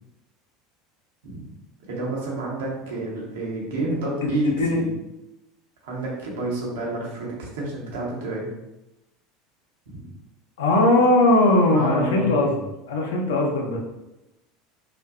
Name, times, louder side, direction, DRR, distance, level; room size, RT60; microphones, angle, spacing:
voice 1, 1.9-4.9 5.8-8.5 9.9-10.0 11.7-12.3, right 2 dB, 65° right, -3 dB, 0.7 m, -29 dB
voice 2, 3.9-4.8 10.6-12.5 12.9-13.8, left 2 dB, 65° left, 1 dB, 0.4 m, -20 dB
2.5 x 2.1 x 2.3 m, 0.94 s
figure-of-eight pair, 75°, 0 cm